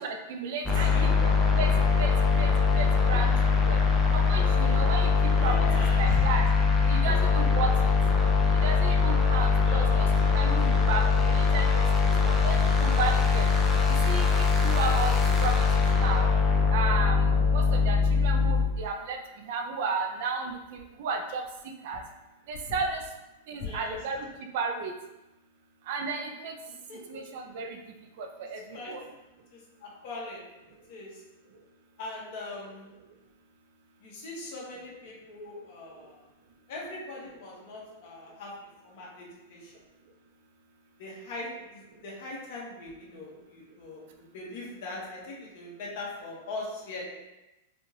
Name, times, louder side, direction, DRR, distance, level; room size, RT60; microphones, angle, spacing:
voice 1, 0.0-3.8 4.1-5.1 5.4-5.6 6.0-6.4 6.9-7.7 8.6-10.1 10.3-11.9 12.3-13.5 14.1-14.3 14.5-15.1 15.4-15.5 16.0-16.3 16.7-17.2 17.5-19.2 19.5-21.4 21.8-22.0 22.5-23.0 23.5-24.3 24.5-24.9 25.9-26.5 27.1-27.8 28.2-29.0, right 4 dB, 55° right, 4 dB, 0.5 m, -33 dB
voice 2, 0.6-1.1 5.4-6.2 9.7-10.1 23.6-24.0 26.9-27.2 28.7-28.9 29.5-30.4 30.9-31.2 32.0-32.9 34.0-36.2 36.7-38.5 38.8-39.7 41.0-44.0 44.3-47.1, left 3 dB, 50° left, -4 dB, 1.4 m, -40 dB
sound 1, 0.6-18.7, left 5 dB, 10° left, 0.5 m, -22 dB
4.8 x 2.4 x 3.3 m, 1.0 s
supercardioid pair, 155°, 0 cm